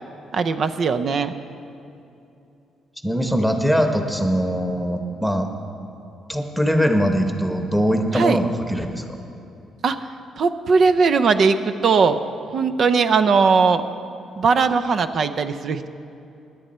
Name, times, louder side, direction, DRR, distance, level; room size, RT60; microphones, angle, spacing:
voice 1, 0.3-1.3 8.1-8.4 9.8-10.0 10.4-12.2 12.5-13.8 14.4-15.9, right 5 dB, 55° right, 10 dB, 0.6 m, -19 dB
voice 2, 3.0-5.5 6.3-9.2, equal, ahead, 4 dB, 1.2 m, -21 dB
17.0 x 10.5 x 4.3 m, 2.8 s
cardioid pair, 90°, 0 cm